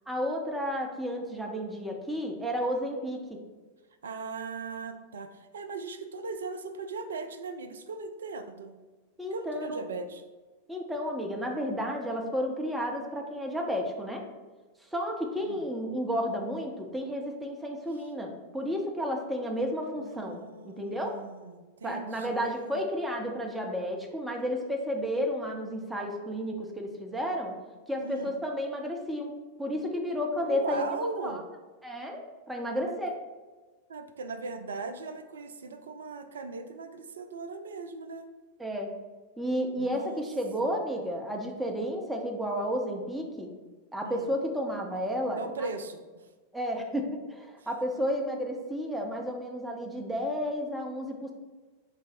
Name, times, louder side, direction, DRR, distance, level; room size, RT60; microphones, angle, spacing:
voice 1, 0.1-3.2 9.2-9.9 10.7-14.2 14.9-21.2 21.8-27.5 27.9-29.3 29.6-31.4 31.8-33.1 38.6-38.9 39.4-43.5 43.9-45.4 46.5-51.3, equal, 5° right, 1 dB, 0.6 m, -32 dB
voice 2, 4.0-8.7 9.3-10.2 15.4-15.6 19.9-22.8 28.0-28.3 30.4-31.4 32.9-33.0 33.9-38.3 39.8-40.2 40.6-40.8 44.0-44.3 45.3-46.3 47.6-47.7, right 3 dB, 65° right, 9 dB, 0.3 m, -39 dB
4.1 x 2.0 x 4.2 m, 1.3 s
figure-of-eight pair, 90°, 0 cm